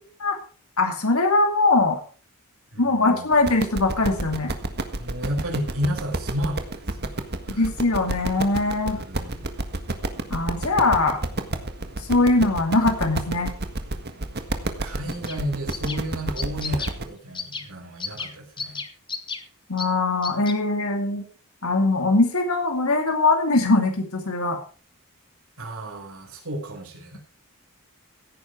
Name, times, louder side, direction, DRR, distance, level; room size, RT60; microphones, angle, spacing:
voice 1, 0.8-2.0 2.8-4.6 7.5-9.0 10.3-11.2 12.1-13.5 19.7-21.2 21.6-24.6, left 2 dB, 70° left, 4 dB, 2.4 m, -21 dB
voice 2, 2.7-3.3 5.0-7.1 7.5-7.7 8.9-9.4 14.8-18.8 25.6-27.2, equal, 70° right, 1 dB, 5.2 m, -32 dB
sound 1, 3.3-17.0, right 2 dB, 50° right, 1.7 m, -30 dB
sound 2, 15.1-15.4 15.7-16.0 16.4-16.9 17.3-17.7 18.0-18.3 18.6-19.4 19.8-19.9 20.2-20.5, left 5 dB, 20° left, 1.4 m, -32 dB
16.0 x 9.6 x 4.7 m, 0.39 s
head